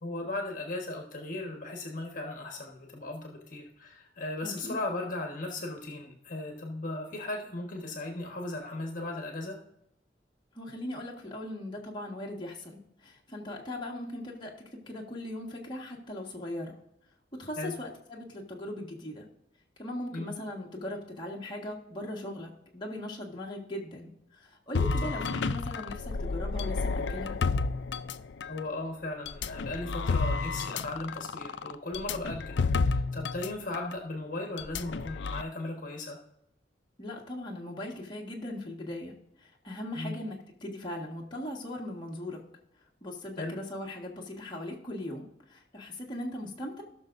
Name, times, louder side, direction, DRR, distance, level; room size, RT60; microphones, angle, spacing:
voice 1, 0.0-9.6 17.6-17.8 20.1-20.3 25.0-25.2 28.5-36.2 39.9-40.2 43.4-43.6, left 2 dB, 50° left, 2 dB, 1.4 m, -37 dB
voice 2, 4.4-4.8 10.5-14.5 14.9-16.8 17.4-19.3 19.8-27.4 37.0-42.4 43.0-46.8, left 1 dB, 25° left, -2 dB, 1.6 m, -39 dB
sound 1, 24.7-28.6 29.3-33.5 33.7-33.9 34.6-35.4, left 4 dB, 85° left, 0.5 m, -30 dB
17.5 x 6.2 x 2.6 m, 0.79 s
head